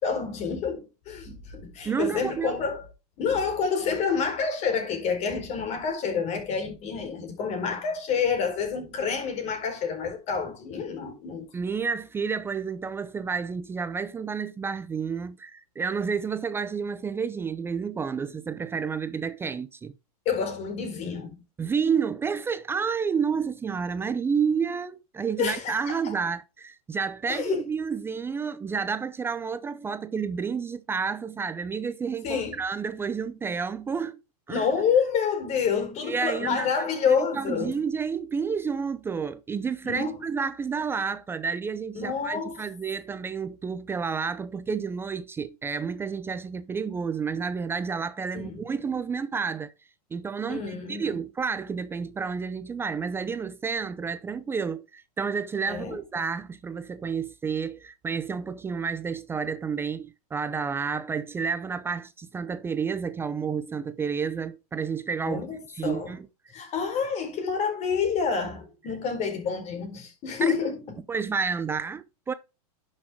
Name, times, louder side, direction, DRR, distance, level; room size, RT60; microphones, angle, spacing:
voice 1, 0.0-2.9 3.2-11.5 20.2-21.4 25.4-26.0 27.3-27.6 32.2-32.6 34.5-37.7 39.8-40.1 42.0-42.6 48.3-48.6 50.5-51.2 55.7-56.0 65.2-66.1 66.5-70.8, left 6 dB, 35° left, 4.4 m, -28 dB
voice 2, 1.8-2.6 11.5-19.9 21.6-34.2 34.5-34.7 36.0-49.7 50.1-66.3 70.4-70.5 71.1-72.3, right 6 dB, 10° right, 0.5 m, -30 dB
11.0 x 6.5 x 3.6 m
hypercardioid pair, 135°, 20 cm